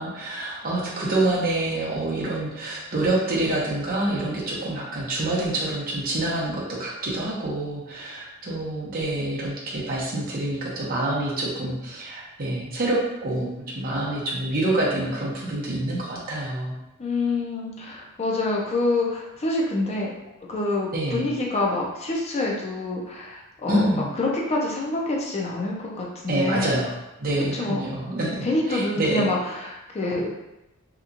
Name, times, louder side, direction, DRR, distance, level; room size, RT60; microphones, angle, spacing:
voice 1, 0.0-16.8 20.9-21.3 23.7-24.1 26.3-26.9 27.2-29.3, right 1 dB, 40° right, -5 dB, 0.7 m, -27 dB
voice 2, 17.0-20.1 20.5-23.9 24.2-26.8 27.5-27.9 28.4-30.3, left 2 dB, 30° left, -2 dB, 0.5 m, -26 dB
2.8 x 2.3 x 2.5 m, 0.94 s
head